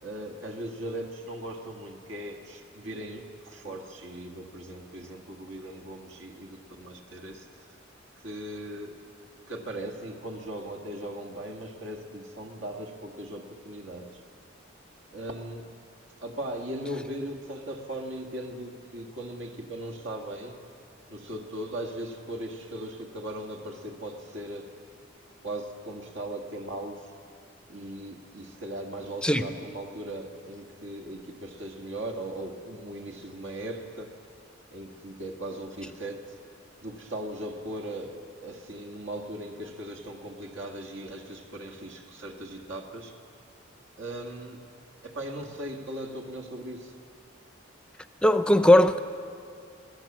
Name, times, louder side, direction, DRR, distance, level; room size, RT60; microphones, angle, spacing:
voice 1, 0.0-7.5 8.2-9.0 9.5-14.2 15.1-15.7 16.2-20.6 21.1-24.8 25.4-27.1 27.7-34.2 34.7-36.2 36.8-43.2 44.0-44.6 45.0-47.0, right 1 dB, 75° right, 1.9 m, -38 dB
voice 2, 48.2-49.0, left 1 dB, 5° left, 0.5 m, -18 dB
22.0 x 16.5 x 7.4 m
head